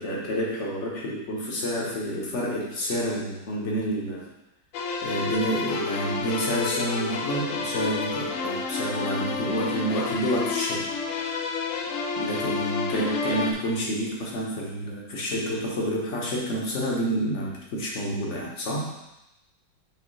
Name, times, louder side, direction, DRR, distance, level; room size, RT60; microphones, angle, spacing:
voice 1, 0.0-4.3 5.0-11.5 12.2-18.9, equal, 45° left, -3 dB, 1.3 m, -29 dB
sound 1, 4.7-13.5, left 4 dB, 80° left, 0.7 m, -30 dB
8.7 x 3.3 x 3.2 m, 0.93 s
omnidirectional pair, 2.0 m